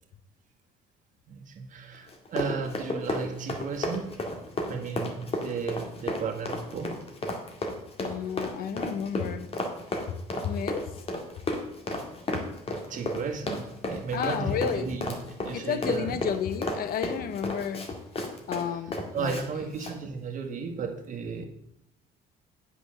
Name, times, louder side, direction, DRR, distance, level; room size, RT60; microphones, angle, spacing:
voice 1, 1.3-4.1 4.7-7.0 12.7-15.0 15.4-16.2 19.1-21.5, right 5 dB, 50° right, 1.7 m, -34 dB
Run, 2.1-19.4 19.7-19.9, left 2 dB, 35° left, 2.0 m, -33 dB
voice 2, 8.0-9.5 10.1-10.2 10.4-11.0 14.1-14.9 15.5-17.9 18.5-19.4, left 8 dB, 60° left, 0.9 m, -31 dB
8.1 x 6.2 x 6.4 m
cardioid pair, 110°, 17 cm